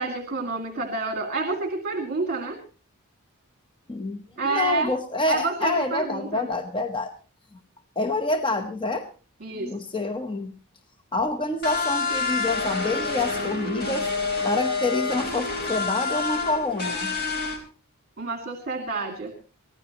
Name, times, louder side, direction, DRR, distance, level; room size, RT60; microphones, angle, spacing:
voice 1, 0.0-2.6 4.4-4.9 5.2-6.5 9.4-9.7 18.2-19.3, right 3 dB, 45° right, 4 dB, 2.1 m, -28 dB
voice 2, 3.9-7.1 8.0-9.1 9.5-10.5 11.1-14.1 14.4-17.1, left 2 dB, 25° left, 5 dB, 1.0 m, -27 dB
sound 1, 11.6-17.6, left 4 dB, 45° left, 4.3 m, -27 dB
23.5 x 16.0 x 3.0 m, 0.35 s
head